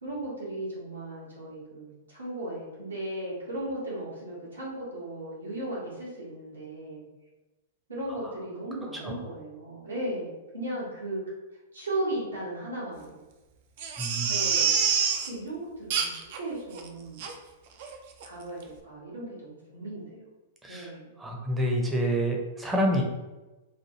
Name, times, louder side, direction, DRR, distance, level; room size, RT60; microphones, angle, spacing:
voice 1, 0.0-7.0 7.9-11.2 11.7-13.2 14.3-17.2 18.2-20.2 20.7-21.2, right 1 dB, 80° right, -6 dB, 1.2 m, -36 dB
Crying sobbing, 13.8-15.3 15.9-16.4 16.7-16.8 17.2-17.3 17.8-18.0 18.2-18.3, right 6 dB, 50° right, 0.4 m, -26 dB
voice 2, 14.0-14.3 20.6-20.9 21.2-23.0, equal, 10° right, 0 dB, 0.6 m, -28 dB
3.1 x 2.2 x 2.9 m, 1.1 s
figure-of-eight pair, 105°, 0 cm